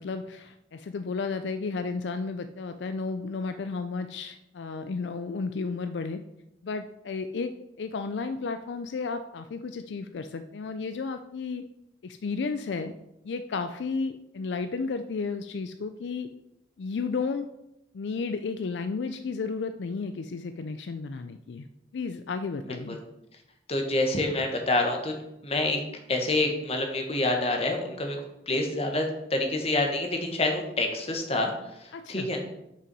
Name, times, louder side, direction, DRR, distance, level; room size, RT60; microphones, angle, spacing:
voice 1, 0.0-6.2 6.6-11.7 12.0-12.9 13.2-16.3 16.8-17.5 17.9-21.7 21.9-23.0 31.9-32.3, left 4 dB, 70° left, 9 dB, 0.4 m, -33 dB
voice 2, 23.7-25.2 25.4-25.8 26.1-28.2 28.5-31.5 32.1-32.4, left 2 dB, 35° left, 3 dB, 1.2 m, -27 dB
6.0 x 5.6 x 5.4 m, 0.85 s
head